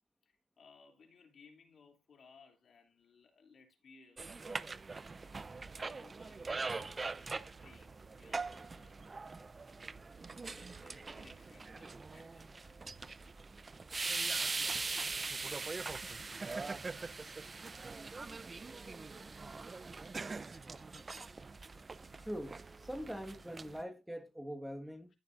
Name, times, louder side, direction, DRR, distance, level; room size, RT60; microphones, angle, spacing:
voice 1, 0.2-4.7 5.7-9.0 10.2-12.5, left 5 dB, 50° left, 3.0 m, -63 dB
sound 1, 4.2-23.8, right 4 dB, 30° right, 0.7 m, -42 dB
voice 2, 22.2-25.1, equal, 5° right, 1.6 m, -43 dB
14.5 x 7.2 x 2.6 m
cardioid pair, 90°, 0 cm